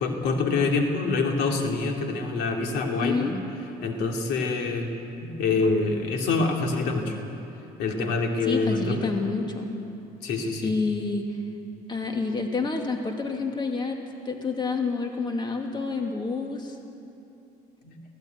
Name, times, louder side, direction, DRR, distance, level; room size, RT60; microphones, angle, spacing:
voice 1, 0.0-3.3 3.8-4.9 5.2-7.2 7.8-9.1 10.2-10.7 17.8-18.0, left 3 dB, 80° left, 2 dB, 2.8 m, -26 dB
voice 2, 3.0-3.3 8.4-9.7 10.6-11.3 11.9-14.0 14.3-16.8, left 4 dB, 25° left, 3 dB, 2.4 m, -28 dB
22.0 x 16.0 x 9.4 m, 2.8 s
cardioid pair, 110°, 17 cm